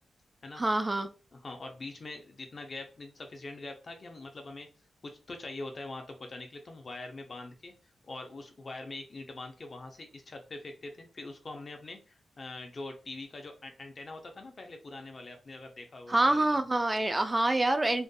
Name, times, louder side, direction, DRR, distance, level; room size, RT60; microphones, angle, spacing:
voice 1, 0.6-1.1 16.1-18.0, right 2 dB, 25° right, 0.3 m, -26 dB
voice 2, 1.3-4.7 5.0-7.7 8.0-16.6, left 2 dB, 50° left, 0.7 m, -43 dB
2.6 x 2.5 x 2.2 m
cardioid pair, 60°, 0 cm